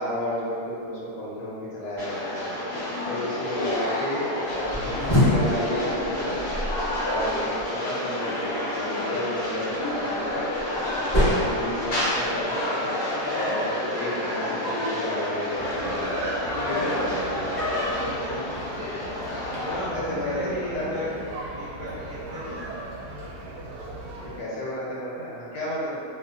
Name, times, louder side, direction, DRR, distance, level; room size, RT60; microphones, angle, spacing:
voice 1, 0.0-2.5 3.0-6.4 7.0-10.4 11.1-12.9 13.3-17.6 19.9-21.1 24.2-26.0, left 1 dB, 80° left, -7 dB, 1.5 m, -32 dB
sound 1, 2.0-19.8, left 1 dB, 60° left, 1.2 m, -29 dB
sound 2, 4.5-7.6 9.9-12.4, left 1 dB, 20° left, 0.7 m, -26 dB
sound 3, 15.6-24.4, right 2 dB, 75° right, 1.1 m, -38 dB
voice 2, 18.0-18.6 19.6-21.2 21.5-22.6, left 1 dB, 50° right, -13 dB, 1.0 m, -35 dB
2.9 x 2.9 x 2.3 m, 2.3 s
omnidirectional pair, 2.1 m